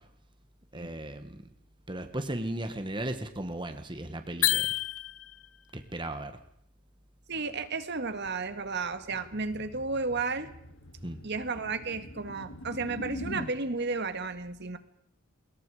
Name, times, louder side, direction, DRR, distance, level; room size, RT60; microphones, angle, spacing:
voice 1, 0.7-1.4 1.9-4.7 5.7-6.4 11.0-11.2, right 1 dB, 25° right, 8 dB, 1.5 m, -36 dB
sound 1, 4.4-5.6, left 14 dB, 85° left, 0.9 m, -28 dB
voice 2, 7.3-10.5 11.2-14.8, right 4 dB, 55° right, 10 dB, 1.9 m, -33 dB
sound 2, 8.2-13.5, left 1 dB, 70° left, 2.0 m, -44 dB
29.0 x 22.0 x 5.0 m, 0.73 s
head